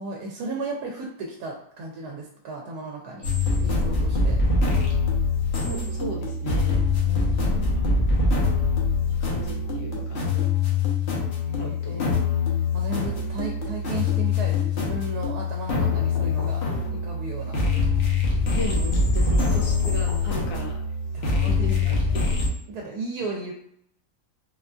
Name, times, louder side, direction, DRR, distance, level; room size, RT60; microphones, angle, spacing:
voice 1, 0.0-3.3 3.6-4.4 7.0-8.2 11.4-12.2 12.7-16.6 16.9-17.6 21.1-22.3 22.7-23.5, right 2 dB, 80° right, 0 dB, 1.1 m, -35 dB
sound 1, 3.2-22.5, left 4 dB, 50° left, 0.9 m, -24 dB
voice 2, 5.6-6.8 7.5-7.6 9.0-10.2 11.6-12.0 18.5-20.7 21.4-22.2, left 1 dB, 80° left, -1 dB, 1.3 m, -35 dB
3.9 x 2.4 x 2.3 m, 0.70 s
omnidirectional pair, 1.6 m